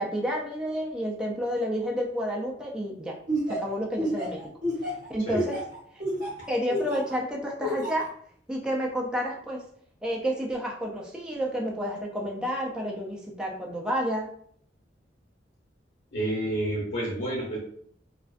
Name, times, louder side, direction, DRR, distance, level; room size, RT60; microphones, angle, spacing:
voice 1, 0.0-3.2 3.5-4.5 5.1-5.6 5.9-6.0 6.5-8.1 8.5-9.6 10.0-14.3, equal, 5° right, -2 dB, 0.4 m, -30 dB
Laughter, 3.3-7.1 7.6-8.1, equal, 55° right, 0.8 m, -29 dB
voice 2, 16.1-17.6, right 1 dB, 80° left, -5 dB, 1.0 m, -29 dB
2.3 x 2.2 x 2.4 m, 0.63 s
head